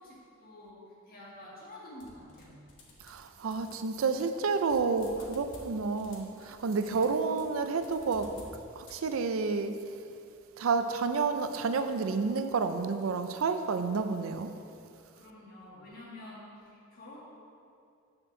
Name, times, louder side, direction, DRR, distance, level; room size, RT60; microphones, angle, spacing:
voice 1, 0.0-2.6 6.8-7.1 15.1-17.2, left 1 dB, 45° left, 1.8 m, -49 dB
sound 1, 2.0-3.3 3.5-9.6, left 1 dB, 60° left, 1.1 m, -53 dB
voice 2, 3.0-8.3 8.8-9.8 10.6-14.5, right 4 dB, 80° right, 0.4 m, -30 dB
6.2 x 4.5 x 6.5 m
head